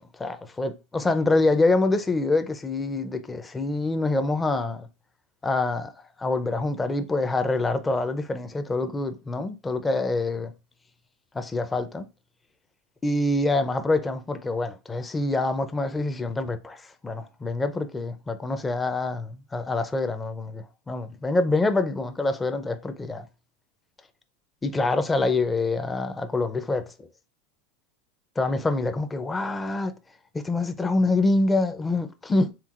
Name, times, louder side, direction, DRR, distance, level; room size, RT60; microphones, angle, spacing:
voice 1, 0.2-4.9 5.4-5.9 6.2-10.5 11.3-12.1 13.0-23.3 24.6-26.9 28.4-29.9 30.3-32.4, left 2 dB, 15° left, 0.5 m, -26 dB
4.4 x 3.5 x 2.4 m
supercardioid pair, 115°, 0 cm